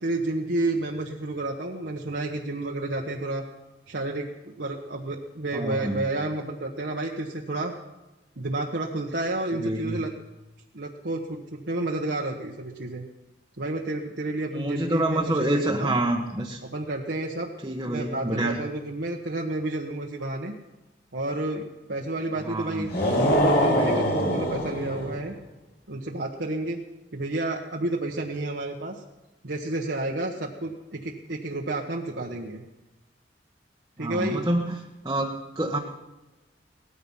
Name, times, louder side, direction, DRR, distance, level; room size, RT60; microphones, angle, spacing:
voice 1, 0.0-3.4 3.9-7.7 8.4-10.1 10.7-13.0 13.6-15.9 16.6-17.5 17.8-20.5 21.1-22.9 23.2-25.3 25.9-26.8 27.1-29.0 29.4-32.6 34.0-34.4, right 2 dB, 65° right, -1 dB, 1.3 m, -30 dB
voice 2, 5.5-6.0 9.6-10.0 14.5-16.6 17.6-18.6 22.5-22.8 34.0-34.8 35.0-35.8, right 1 dB, 20° right, 0 dB, 1.2 m, -27 dB
sound 1, 22.8-25.2, equal, 60° left, 5.9 m, -23 dB
18.0 x 14.0 x 5.6 m, 1.1 s
head